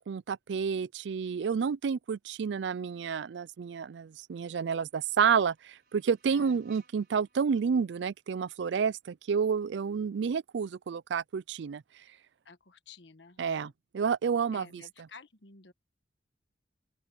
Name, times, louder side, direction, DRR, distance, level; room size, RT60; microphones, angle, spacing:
voice 1, 0.0-11.8 13.4-15.1, right 6 dB, 80° right, 0.4 m, -30 dB
sound 1, 4.6-9.4, right 5 dB, 60° right, 5.0 m, -67 dB
voice 2, 6.3-6.6 12.4-13.7 14.5-15.7, left 4 dB, 80° left, 1.4 m, -52 dB
open air
head